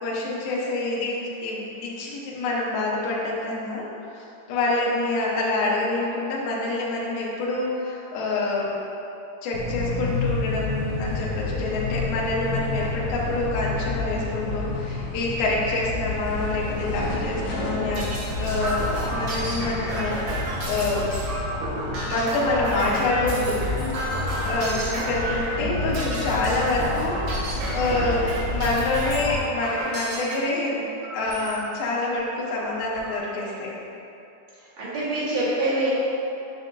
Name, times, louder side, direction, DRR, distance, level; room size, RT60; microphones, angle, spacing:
voice 1, 0.0-3.9 4.5-8.7 9.4-18.1 18.4-21.1 22.1-23.6 24.4-30.8 31.1-33.8, left 2 dB, 70° left, -5 dB, 2.4 m, -26 dB
sound 1, 9.5-29.4, left 2 dB, 90° left, 3.1 m, -30 dB
sound 2, 17.5-30.3 31.0-31.6 32.1-32.2 32.5-33.2, right 1 dB, 85° right, 1.3 m, -31 dB
voice 2, 34.5-35.9, right 2 dB, 55° right, -11 dB, 2.0 m, -26 dB
8.1 x 6.4 x 2.7 m, 2.9 s
omnidirectional pair, 5.2 m